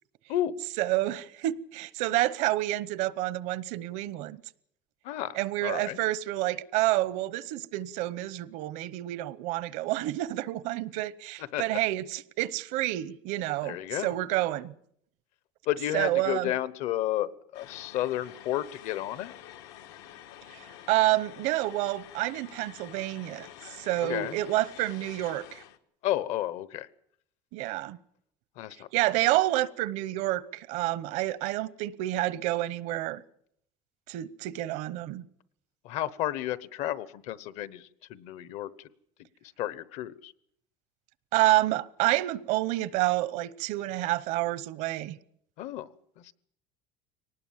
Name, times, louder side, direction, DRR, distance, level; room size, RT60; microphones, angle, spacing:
voice 1, 0.8-4.4 5.3-14.7 15.9-16.5 20.5-25.6 27.5-28.0 28.9-33.2 34.1-35.2 41.3-45.2, right 16 dB, 65° right, 0.9 m, -29 dB
voice 2, 5.0-6.0 11.4-11.6 13.6-14.1 15.7-19.3 24.0-24.4 26.0-26.9 28.6-28.9 35.8-38.7 39.6-40.3 45.6-45.9 46.2-46.3, left 13 dB, 60° left, 0.9 m, -32 dB
sound 1, 17.5-25.8, left 12 dB, 90° left, 1.6 m, -48 dB
23.5 x 19.0 x 7.3 m
cardioid pair, 160°, 13 cm